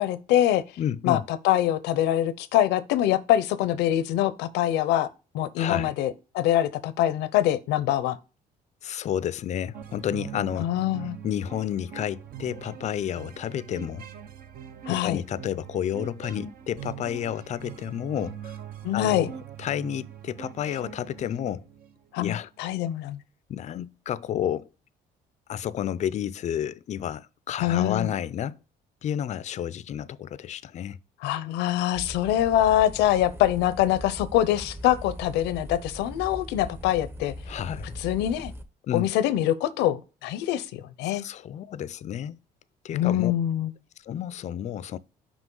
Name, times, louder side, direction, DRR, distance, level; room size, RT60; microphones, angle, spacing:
voice 1, 0.0-0.6 1.0-5.1 5.3-8.2 10.6-11.2 14.9-15.2 18.8-19.3 22.1-22.3 22.6-23.2 27.6-28.1 31.2-37.3 38.0-38.5 38.9-41.2 42.9-43.7, left 12 dB, 90° left, 0.7 m, -24 dB
voice 2, 0.8-1.3 5.6-5.9 8.8-10.7 11.2-14.1 14.9-18.6 18.9-19.3 19.6-21.7 22.2-22.5 23.5-24.7 25.5-28.6 29.0-31.0 37.5-38.0 38.9-39.1 41.0-42.4 42.8-43.3 44.0-45.0, left 10 dB, 45° left, 0.4 m, -31 dB
sound 1, 9.7-22.0, right 9 dB, 60° right, 0.8 m, -42 dB
sound 2, 31.9-38.6, equal, 15° right, 0.8 m, -40 dB
6.1 x 4.9 x 3.8 m
cardioid pair, 110°, 17 cm